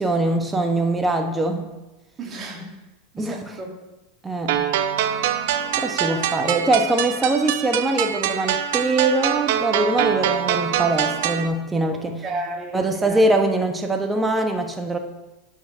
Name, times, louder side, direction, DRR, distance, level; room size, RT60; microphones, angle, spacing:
voice 1, 0.0-1.7 3.2-3.6 4.2-4.7 5.8-12.2 12.7-15.0, right 2 dB, 15° right, 4 dB, 1.1 m, -22 dB
voice 2, 2.2-2.8 3.1-3.7 6.0-6.2 11.9-13.2, right 2 dB, 30° right, -1 dB, 2.5 m, -33 dB
sound 1, 4.5-11.5, right 9 dB, 65° right, 0.7 m, -24 dB
10.5 x 7.1 x 3.4 m, 1.1 s
hypercardioid pair, 90°, 0 cm